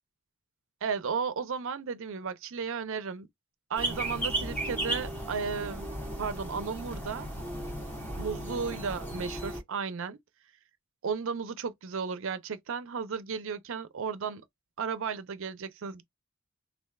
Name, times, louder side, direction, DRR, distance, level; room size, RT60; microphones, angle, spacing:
voice 1, 0.8-3.3 3.7-5.9 6.2-7.3 8.1-10.2 11.0-14.4 14.8-16.0, right 5 dB, 65° right, 0.5 m, -34 dB
sound 1, 3.7-9.6, right 1 dB, 10° left, 1.2 m, -35 dB
3.3 x 2.4 x 2.3 m
head